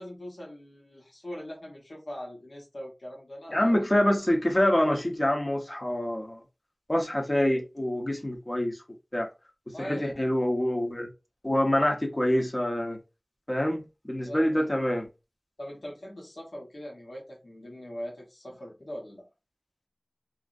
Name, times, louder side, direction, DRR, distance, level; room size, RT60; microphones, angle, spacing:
voice 1, 0.0-3.8 9.7-10.3 14.2-14.6 15.6-19.2, equal, 85° left, 1.2 m, -41 dB
voice 2, 3.5-6.4 6.9-8.8 9.1-9.3 9.8-11.1 11.4-13.0 13.5-15.1, left 1 dB, 35° left, 0.8 m, -26 dB
2.8 x 2.6 x 2.5 m
wide cardioid pair, 45°, 0 cm